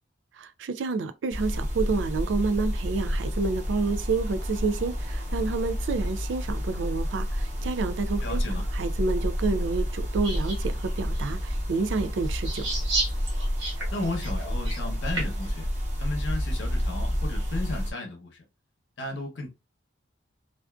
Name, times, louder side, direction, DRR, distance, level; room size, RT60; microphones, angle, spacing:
voice 1, 0.4-12.7, right 4 dB, 75° right, 0.4 m, -29 dB
sound 1, 1.3-17.9, equal, 35° right, 0.7 m, -30 dB
voice 2, 8.2-8.6 13.9-15.7 16.0-18.4 19.0-19.5, left 2 dB, 70° left, 0.8 m, -34 dB
sound 2, 10.2-10.6 11.1-11.3 12.3-15.5, right 2 dB, 90° right, 1.1 m, -32 dB
2.4 x 2.4 x 2.2 m
head